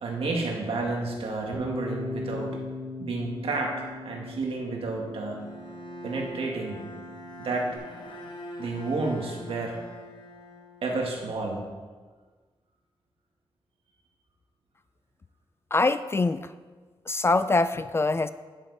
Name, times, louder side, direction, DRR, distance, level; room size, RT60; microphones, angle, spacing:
voice 1, 0.0-2.6 3.0-5.5 6.0-6.8 7.4-7.8 8.6-9.8 10.8-11.7, right 3 dB, 70° right, 0 dB, 2.0 m, -31 dB
Bass guitar, 1.5-7.8, left 2 dB, 15° right, 3.1 m, -39 dB
Bowed string instrument, 5.3-11.3, equal, 50° left, 1.5 m, -44 dB
voice 2, 15.7-16.5 17.1-18.3, left 3 dB, 25° left, 13 dB, 0.3 m, -24 dB
9.1 x 9.1 x 4.2 m, 1.4 s
wide cardioid pair, 120°, 10 cm